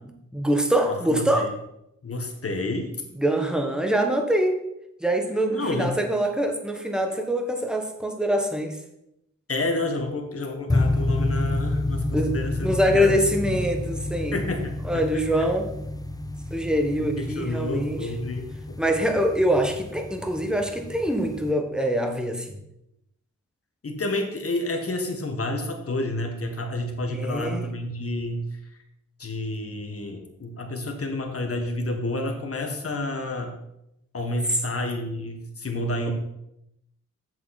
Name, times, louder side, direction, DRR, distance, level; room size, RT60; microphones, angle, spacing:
voice 1, 0.3-1.5 3.1-4.6 5.0-8.8 12.1-12.3 12.6-14.4 14.8-15.7 16.5-18.1 18.8-22.6 27.1-27.7, equal, 5° right, 4 dB, 1.3 m, -24 dB
voice 2, 0.9-1.5 2.0-3.0 5.5-6.0 9.5-13.2 13.5-13.6 14.3-14.7 15.1-15.2 17.0-18.8 23.8-28.6 29.2-33.5 34.1-36.1, left 2 dB, 50° left, 4 dB, 1.6 m, -30 dB
sound 1, 10.7-21.5, left 2 dB, 10° left, 0.5 m, -29 dB
7.8 x 7.3 x 4.2 m, 0.83 s
cardioid pair, 75°, 30 cm